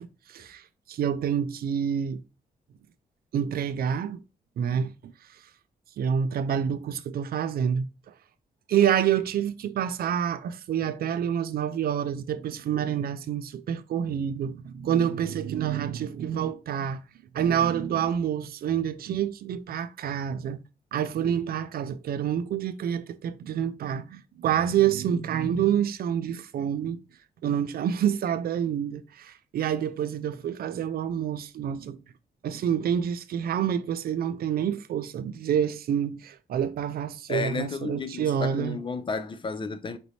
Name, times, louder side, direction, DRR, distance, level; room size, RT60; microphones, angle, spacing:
voice 1, 0.0-2.2 3.3-4.2 4.6-4.9 6.0-8.1 8.7-17.0 17.3-20.6 20.9-27.0 27.4-32.0 32.4-38.8, right 9 dB, 70° right, 0.4 m, -27 dB
voice 2, 37.3-40.0, left 4 dB, 30° left, 0.3 m, -32 dB
5.1 x 3.1 x 2.7 m
wide cardioid pair, 145°, 16 cm